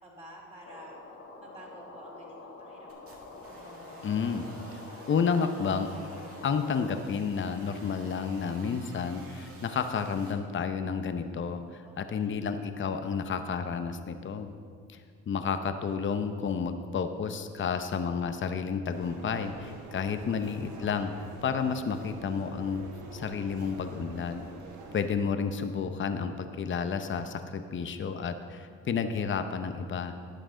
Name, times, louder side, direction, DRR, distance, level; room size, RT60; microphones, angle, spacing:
voice 1, 0.0-1.0 1.4-3.5 11.8-12.5 19.9-20.4, right 1 dB, 20° right, -4 dB, 2.7 m, -51 dB
sound 1, 0.6-7.0, left 3 dB, 55° left, 1.3 m, -47 dB
sound 2, 2.9-10.3, right 2 dB, 50° right, 1.9 m, -50 dB
voice 2, 4.0-4.4 5.1-5.9 6.4-14.5 14.9-15.0 15.3-21.1 21.4-22.8 23.1-24.4 24.9-30.1, left 6 dB, 40° left, 8 dB, 0.7 m, -31 dB
sound 3, 18.9-25.1, right 2 dB, 70° right, 1.3 m, -46 dB
11.5 x 8.7 x 3.8 m, 2.1 s
cardioid pair, 90°, 30 cm